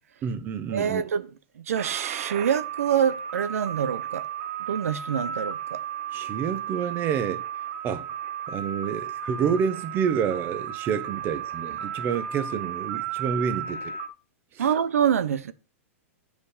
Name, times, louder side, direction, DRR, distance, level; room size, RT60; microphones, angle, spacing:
voice 1, 0.2-1.0 6.1-7.4 7.8-8.1 8.5-13.9 14.5-14.7, right 7 dB, 25° right, 1.1 m, -28 dB
voice 2, 0.7-1.3 1.7-4.3 4.7-5.8 14.6-15.5, right 8 dB, 90° right, 0.8 m, -25 dB
sound 1, 1.7-14.1, right 9 dB, 50° right, 1.1 m, -34 dB
8.3 x 5.2 x 5.0 m
hypercardioid pair, 140°, 8 cm